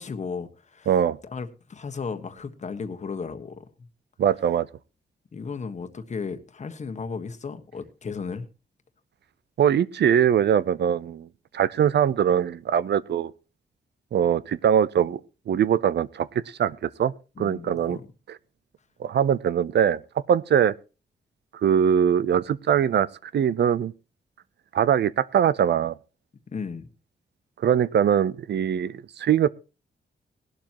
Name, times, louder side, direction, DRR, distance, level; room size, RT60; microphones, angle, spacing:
voice 1, 0.0-3.6 5.3-8.5 17.4-18.1 26.5-26.9, left 5 dB, 40° left, 1.4 m, -35 dB
voice 2, 0.9-1.2 4.2-4.7 9.6-11.3 11.5-13.3 14.1-15.2 15.5-16.3 16.6-18.0 19.0-20.0 20.3-20.7 21.6-23.9 24.7-25.9 27.6-29.5, right 9 dB, 70° right, 0.6 m, -22 dB
19.0 x 12.0 x 3.0 m
wide cardioid pair, 180°, 18 cm